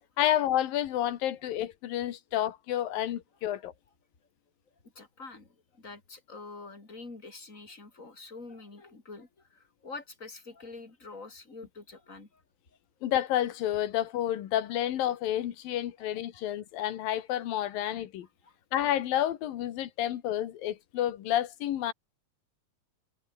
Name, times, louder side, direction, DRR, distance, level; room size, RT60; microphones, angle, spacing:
voice 1, 0.2-3.7 13.0-18.3 18.7-21.9, left 12 dB, 90° left, 3.3 m, -30 dB
voice 2, 4.9-12.4 16.0-16.4 17.9-18.0 18.4-18.6, left 3 dB, 20° left, 5.0 m, -46 dB
omnidirectional pair, 4.0 m